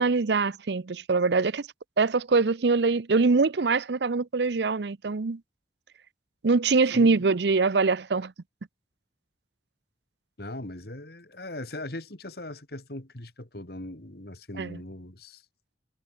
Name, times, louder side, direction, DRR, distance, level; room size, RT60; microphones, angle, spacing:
voice 1, 0.0-1.7 2.0-5.4 6.4-8.3 14.6-14.8, right 4 dB, 70° right, 0.6 m, -23 dB
voice 2, 10.4-15.4, left 1 dB, 60° left, 2.6 m, -39 dB
head